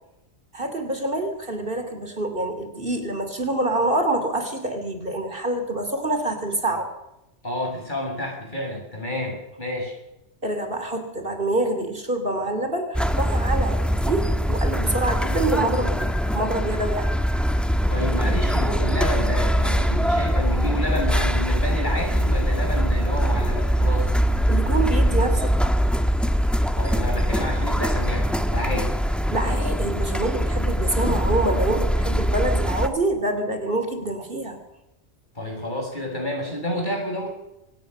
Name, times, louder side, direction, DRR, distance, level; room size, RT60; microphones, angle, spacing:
voice 1, 0.5-6.9 10.4-17.1 24.5-25.7 29.3-34.6, right 2 dB, 50° right, 6 dB, 3.3 m, -26 dB
voice 2, 7.4-9.9 17.9-24.2 26.7-28.9 35.4-37.3, left 1 dB, 40° left, 1 dB, 7.4 m, -29 dB
sound 1, 12.9-32.9, equal, ahead, 1.3 m, -22 dB
24.5 x 18.5 x 6.7 m, 0.88 s
omnidirectional pair, 1.2 m